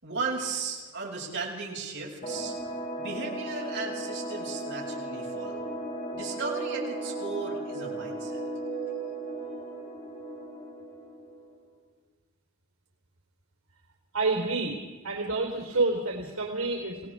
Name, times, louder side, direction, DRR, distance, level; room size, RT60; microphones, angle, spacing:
voice 1, 0.0-2.5 3.0-5.7 6.1-8.4, right 4 dB, 55° right, -3 dB, 7.1 m, -35 dB
sound 1, 2.2-11.5, right 2 dB, 45° left, 6.9 m, -36 dB
voice 2, 14.1-14.8 15.0-17.1, right 3 dB, 85° right, 0 dB, 4.0 m, -28 dB
29.5 x 18.0 x 4.9 m, 1.3 s
head